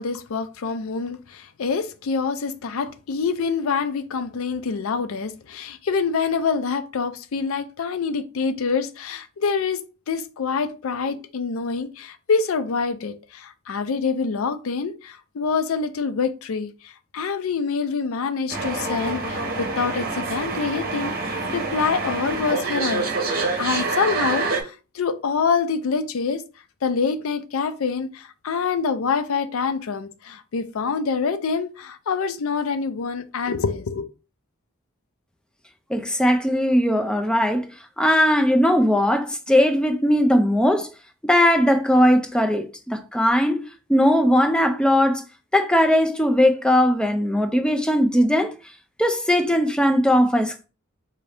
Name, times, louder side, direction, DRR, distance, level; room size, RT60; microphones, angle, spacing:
voice 1, 0.0-26.4 26.8-34.0, left 5 dB, 75° left, 0.4 m, -26 dB
sound 1, 18.5-24.6, right 3 dB, 45° right, 0.9 m, -26 dB
voice 2, 35.9-37.7 38.0-40.9 41.2-43.6 43.9-45.2 45.5-48.5 49.0-50.7, equal, 5° left, 0.4 m, -19 dB
3.9 x 2.6 x 3.3 m
head